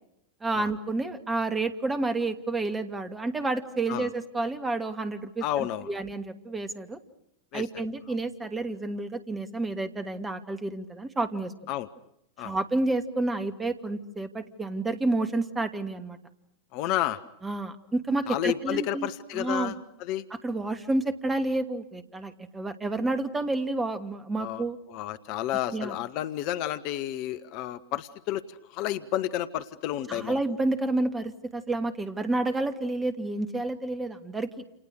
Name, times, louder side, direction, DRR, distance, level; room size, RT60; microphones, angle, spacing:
voice 1, 0.4-7.0 7.5-11.5 12.4-16.2 17.4-19.1 19.3-19.7 20.4-24.8 25.7-26.0 30.1-34.6, right 2 dB, 15° right, 9 dB, 2.5 m, -30 dB
voice 2, 5.4-5.9 7.5-7.6 11.7-11.9 12.4-12.6 16.7-17.2 18.3-19.7 20.0-20.2 24.4-24.6 24.9-30.4, left 13 dB, 45° left, 13 dB, 1.2 m, -31 dB
29.5 x 29.0 x 6.5 m, 0.79 s
figure-of-eight pair, 90°, 0 cm